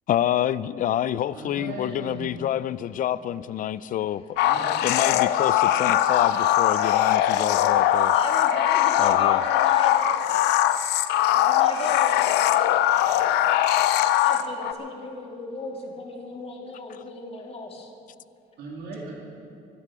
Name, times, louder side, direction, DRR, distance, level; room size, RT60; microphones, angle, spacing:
voice 1, 0.1-4.2 4.8-8.1 9.0-9.4, left 11 dB, 55° left, 18 dB, 0.5 m, -27 dB
voice 2, 1.3-2.5 4.4-4.7 18.6-19.1, right 3 dB, 75° right, -3 dB, 3.1 m, -38 dB
sound 1, 4.4-14.7, left 12 dB, 90° left, 0.7 m, -21 dB
voice 3, 8.1-10.3 11.3-12.3 14.2-17.9, left 3 dB, 35° left, 1 dB, 2.3 m, -36 dB
25.5 x 11.5 x 4.9 m, 2.7 s
cardioid pair, 110°, 17 cm